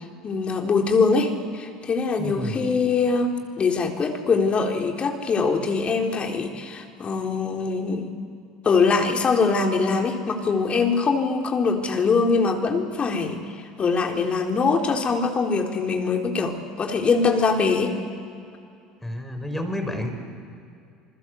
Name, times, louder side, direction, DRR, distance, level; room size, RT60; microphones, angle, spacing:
voice 1, 0.2-8.1 8.6-13.4 13.8-18.0, left 4 dB, 35° left, 3 dB, 3.9 m, -23 dB
voice 2, 2.2-2.6 19.0-20.1, left 1 dB, 5° left, 5 dB, 5.8 m, -30 dB
28.5 x 20.0 x 8.5 m, 2.5 s
hypercardioid pair, 70°, 3 cm